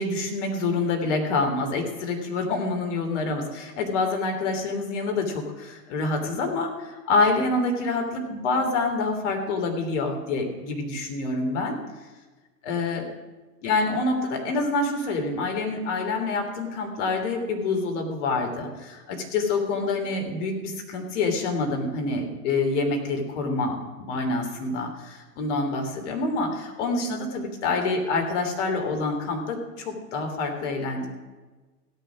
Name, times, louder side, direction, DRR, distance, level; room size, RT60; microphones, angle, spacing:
voice 1, 0.0-11.8 12.6-13.1 13.6-23.8 24.1-31.1, left 3 dB, 45° left, 3 dB, 3.1 m, -27 dB
16.0 x 9.0 x 6.2 m, 1.2 s
figure-of-eight pair, 100°, 48 cm